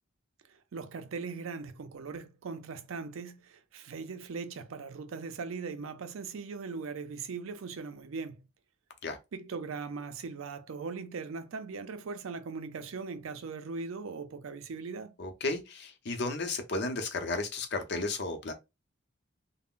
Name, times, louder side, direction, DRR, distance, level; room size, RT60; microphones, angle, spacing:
voice 1, 0.5-8.4 9.3-15.2, right 4 dB, 80° right, 0.4 m, -39 dB
voice 2, 15.2-18.5, left 3 dB, 55° left, 0.7 m, -33 dB
2.4 x 2.1 x 3.6 m
head